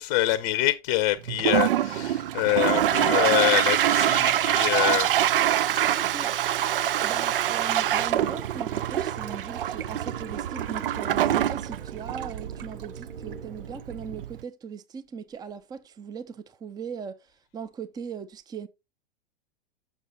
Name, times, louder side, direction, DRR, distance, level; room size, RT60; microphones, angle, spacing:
voice 1, 0.0-5.1, left 15 dB, 45° left, 0.8 m, -25 dB
Toilet flush, 1.3-14.4, right 11 dB, 65° right, 0.5 m, -25 dB
voice 2, 5.9-6.3 7.0-18.7, right 6 dB, 15° right, 0.6 m, -39 dB
sound 1, 8.1-13.8, equal, 80° right, 4.7 m, -47 dB
7.2 x 6.2 x 4.1 m
figure-of-eight pair, 100°, 30 cm